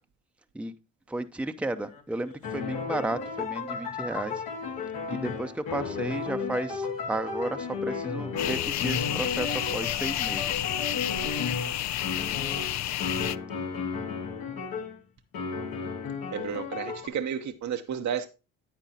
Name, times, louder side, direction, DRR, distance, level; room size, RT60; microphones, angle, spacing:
voice 1, 1.1-4.4 5.1-10.6, right 2 dB, 5° right, 0.7 m, -33 dB
sound 1, 1.8-15.0 15.3-17.1, left 5 dB, 75° left, 1.9 m, -34 dB
sound 2, 8.4-13.4, left 13 dB, 50° left, 0.5 m, -30 dB
voice 2, 16.3-18.3, right 8 dB, 50° right, 0.9 m, -32 dB
9.2 x 9.0 x 2.8 m
hypercardioid pair, 50°, 36 cm